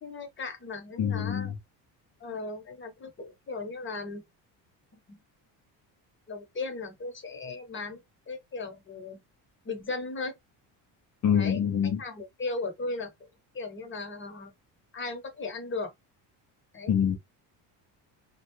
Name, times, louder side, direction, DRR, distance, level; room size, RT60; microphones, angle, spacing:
voice 1, 0.0-1.5 2.2-4.2 5.1-5.2 6.3-9.2 9.6-10.4 11.3-11.6 12.0-13.1 13.5-14.5 14.9-15.9 16.7-16.9, left 3 dB, 25° left, 0.9 m, -37 dB
voice 2, 1.0-1.5 11.2-12.0 16.9-17.2, left 8 dB, 40° left, 0.6 m, -25 dB
2.3 x 2.2 x 3.0 m
cardioid pair, 100°, 44 cm